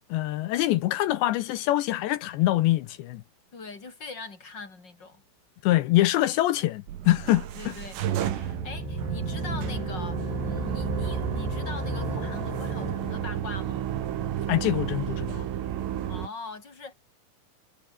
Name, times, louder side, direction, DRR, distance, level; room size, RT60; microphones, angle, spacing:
voice 1, 0.1-3.2 5.6-7.7 14.5-15.5, left 16 dB, 75° left, 2.8 m, -24 dB
voice 2, 3.5-5.2 7.5-8.0 8.3-13.8 16.1-16.9, left 4 dB, 20° left, 4.5 m, -41 dB
sound 1, 6.9-16.3, right 11 dB, 90° right, 5.2 m, -31 dB
sound 2, 8.3-13.5, left 7 dB, 60° left, 6.0 m, -36 dB
omnidirectional pair, 5.8 m